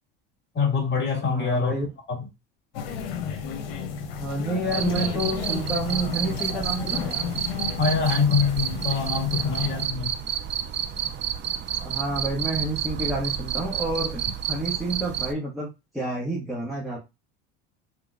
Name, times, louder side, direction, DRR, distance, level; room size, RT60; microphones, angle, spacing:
voice 1, 0.5-1.8 2.1-2.3 7.8-10.2, left 5 dB, 35° left, 1.7 m, -24 dB
voice 2, 1.3-1.9 4.2-7.2 11.8-15.7 15.9-17.0, right 2 dB, ahead, 1.5 m, -29 dB
sound 1, 2.7-9.9, left 7 dB, 90° left, 0.8 m, -32 dB
Cricket, 4.7-15.3, right 10 dB, 40° right, 0.5 m, -30 dB
3.8 x 2.9 x 2.4 m
supercardioid pair, 100°, 29 cm